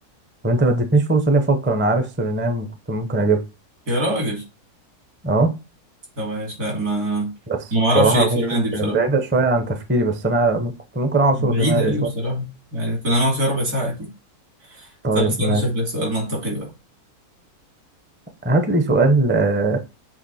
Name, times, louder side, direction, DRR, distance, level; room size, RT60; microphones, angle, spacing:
voice 1, 0.4-3.4 5.2-5.6 7.5-7.6 7.9-8.4 8.7-11.9 15.0-15.6 18.4-19.8, right 2 dB, 15° right, 0.3 m, -20 dB
voice 2, 3.9-4.4 6.2-7.3 7.7-9.0 11.4-14.1 14.7-14.9 15.1-16.7, equal, 70° right, 3.1 m, -23 dB
7.4 x 3.0 x 4.2 m
omnidirectional pair, 1.7 m